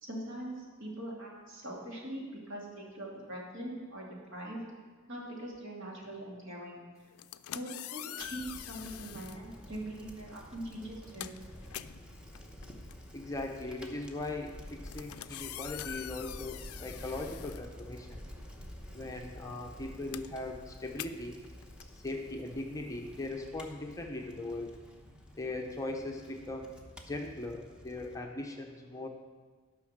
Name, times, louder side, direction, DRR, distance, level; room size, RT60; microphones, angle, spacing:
voice 1, 0.0-4.6 5.1-6.8 7.5-11.3, right 1 dB, 60° right, -3 dB, 2.5 m, -42 dB
sound 1, 7.1-9.4 10.3-10.5 10.8-18.3 18.6-23.3, left 13 dB, 90° left, 0.4 m, -45 dB
Bicycle, 8.2-28.1, equal, 5° right, 0.9 m, -50 dB
voice 2, 13.1-18.2 18.9-21.4 22.0-24.7 25.4-26.7 27.1-29.1, left 2 dB, 15° left, 2 dB, 0.7 m, -39 dB
12.0 x 5.7 x 6.5 m, 1.4 s
head